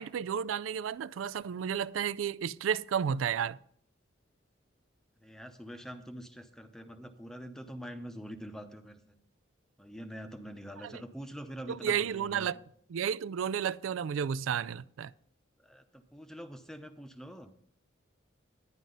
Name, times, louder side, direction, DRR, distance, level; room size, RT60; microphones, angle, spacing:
voice 1, 0.0-3.6 11.7-12.6 12.9-15.1, right 8 dB, 85° right, 0.4 m, -32 dB
voice 2, 5.2-9.2 9.8-12.5 15.6-17.5, equal, 5° left, 0.7 m, -45 dB
11.0 x 10.5 x 3.9 m
head